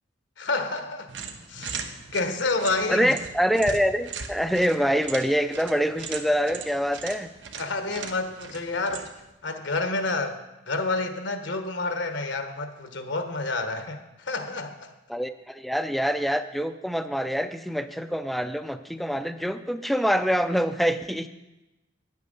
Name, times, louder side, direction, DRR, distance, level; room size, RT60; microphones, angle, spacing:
voice 1, 0.4-1.1 1.5-3.1 7.6-9.1 9.4-10.4 10.6-14.9, left 3 dB, 75° left, 7 dB, 1.1 m, -29 dB
sound 1, 1.1-9.3, right 5 dB, 80° right, 0.9 m, -39 dB
voice 2, 2.9-7.3 15.1-21.3, equal, ahead, 10 dB, 0.4 m, -25 dB
9.4 x 8.5 x 5.4 m, 0.99 s
head